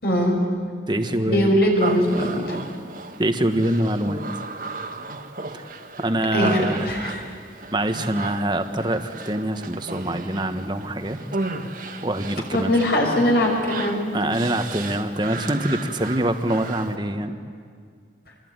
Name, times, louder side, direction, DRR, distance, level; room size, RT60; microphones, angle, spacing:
voice 1, 0.0-0.4 1.2-2.6 6.3-7.2 12.5-14.0, equal, 60° left, 0 dB, 6.2 m, -21 dB
voice 2, 0.9-1.5 2.3-2.5 3.2-4.2 5.5-5.7 6.0-7.3 7.7-11.2 12.0-12.8 14.1-17.3, right 1 dB, 25° right, 8 dB, 1.4 m, -25 dB
Human voice, 1.8-17.0, right 3 dB, 50° right, 1.7 m, -35 dB
27.0 x 21.5 x 9.6 m, 2.1 s
head